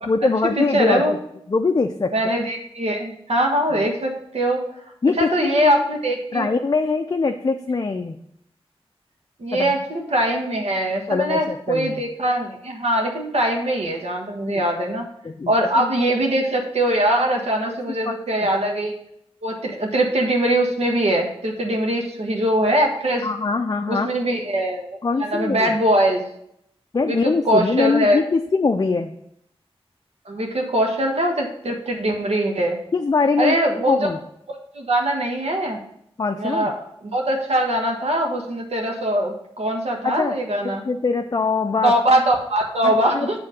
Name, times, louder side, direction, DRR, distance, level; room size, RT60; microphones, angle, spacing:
voice 1, 0.1-1.2 1.5-2.1 3.7-3.9 5.0-5.9 6.3-8.2 9.5-9.8 11.1-12.0 14.5-14.6 15.2-15.9 17.6-17.8 18.0-18.1 18.4-18.5 23.2-24.1 25.0-25.8 26.9-29.1 32.9-33.6 33.9-34.2 36.2-36.7 40.0-40.4 40.6-41.9 42.8-43.4, left 4 dB, 40° left, 5 dB, 0.5 m, -23 dB
voice 2, 0.6-1.1 2.1-4.6 5.2-6.5 9.4-15.1 15.5-18.9 19.4-23.3 23.9-24.9 25.2-26.2 27.1-28.2 30.3-32.8 33.4-34.1 34.7-35.8 36.4-36.7 37.1-40.8 41.8-43.4, right 1 dB, 80° right, 1 dB, 1.5 m, -22 dB
7.7 x 3.8 x 6.4 m, 0.73 s
wide cardioid pair, 80°, 10 cm